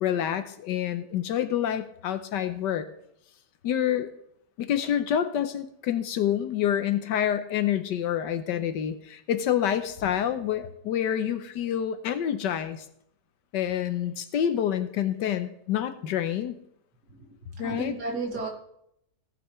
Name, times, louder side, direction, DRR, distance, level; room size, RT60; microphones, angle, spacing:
voice 1, 0.0-2.9 3.6-4.1 4.6-12.8 13.5-16.6 17.6-17.9, left 10 dB, 80° left, 9 dB, 1.4 m, -27 dB
voice 2, 17.1-18.5, right 3 dB, 65° right, 0 dB, 3.0 m, -34 dB
17.5 x 7.8 x 3.2 m, 0.75 s
omnidirectional pair, 1.9 m